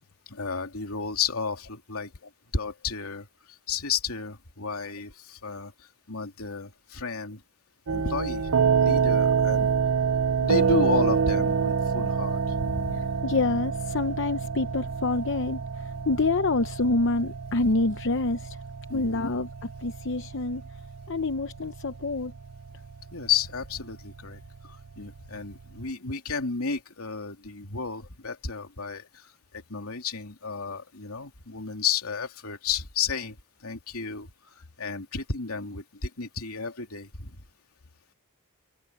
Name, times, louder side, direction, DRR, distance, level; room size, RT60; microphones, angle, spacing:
voice 1, 0.3-2.1 2.5-7.4 7.9-8.5 8.8-9.7 10.4-13.1 18.9-19.3 23.1-37.4, left 5 dB, 80° left, 3.0 m, -32 dB
sound 1, 7.9-25.8, right 6 dB, 80° right, 0.7 m, -27 dB
voice 2, 13.2-18.6 18.9-19.5 19.8-20.6 21.1-22.3, left 3 dB, 60° left, 0.8 m, -27 dB
head